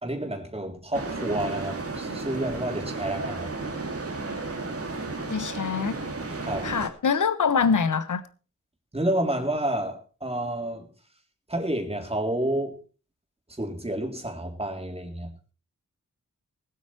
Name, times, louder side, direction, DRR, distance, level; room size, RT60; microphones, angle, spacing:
voice 1, 0.0-3.5 6.4-6.7 8.9-10.9 11.5-12.8 13.6-15.3, right 1 dB, 20° right, 3.8 m, -29 dB
sound 1, 0.9-6.9, right 3 dB, 50° right, 2.6 m, -33 dB
voice 2, 5.3-6.0 6.6-8.2, left 6 dB, 80° left, 1.4 m, -24 dB
20.0 x 8.4 x 4.6 m
wide cardioid pair, 95°, 30 cm